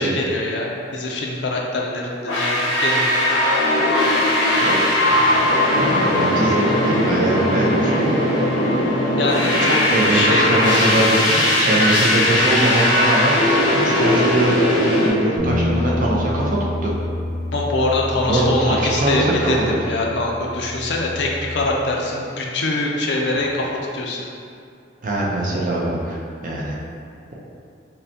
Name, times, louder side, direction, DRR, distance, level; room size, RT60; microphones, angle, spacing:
voice 1, 0.0-3.4 9.2-9.8 10.1-10.5 17.5-24.2, left 2 dB, 60° left, -1 dB, 0.5 m, -23 dB
sound 1, 2.3-15.1, left 1 dB, 90° left, 0.8 m, -18 dB
voice 2, 5.0-5.4 5.8-8.1 9.9-13.4 13.7-16.9 18.3-19.5 25.0-26.2 26.4-26.8, right 1 dB, 45° right, -4 dB, 0.6 m, -22 dB
sound 2, 15.4-21.6, left 1 dB, 5° left, 0.4 m, -28 dB
5.4 x 2.2 x 2.8 m, 2.3 s
head